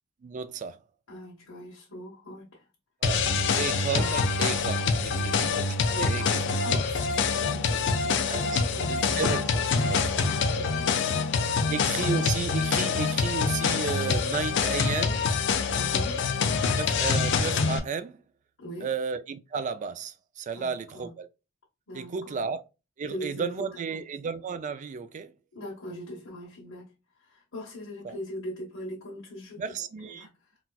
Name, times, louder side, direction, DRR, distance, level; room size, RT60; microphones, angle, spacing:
voice 1, 0.2-0.8 3.0-6.5 8.3-8.6 8.9-10.1 11.7-15.2 16.8-18.2 18.8-21.3 21.9-22.6 23.0-25.3 28.0-28.2 29.6-30.3, right 5 dB, 40° right, 0.3 m, -33 dB
voice 2, 1.1-2.6 3.3-3.7 5.1-5.5 5.9-9.3 9.7-12.0 15.7-16.2 18.6-18.9 20.5-21.1 21.9-22.4 23.1-24.0 25.5-30.5, equal, 75° left, 1.1 m, -42 dB
sound 1, 3.0-17.8, left 5 dB, 60° left, 0.4 m, -26 dB
sound 2, 4.0-6.4 8.7-8.8 9.2-12.0 12.2-13.0 13.3-13.5 13.8-13.9 14.6-14.9, right 2 dB, 55° right, 1.0 m, -43 dB
4.0 x 2.3 x 2.2 m
head